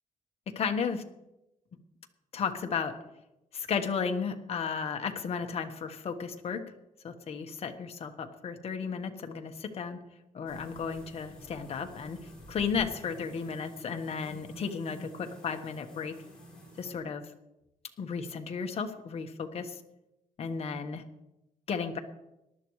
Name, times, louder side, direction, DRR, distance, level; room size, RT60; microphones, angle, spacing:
voice 1, 0.5-1.0 2.3-3.0 3.5-6.6 7.0-10.0 10.3-12.2 12.5-16.2 16.8-17.2 18.0-19.8 20.4-21.0 21.7-22.0, left 6 dB, 45° left, 5 dB, 1.3 m, -34 dB
sound 1, 10.5-17.0, equal, 5° left, 6.2 m, -49 dB
19.0 x 12.5 x 3.2 m, 0.90 s
cardioid pair, 145°, 14 cm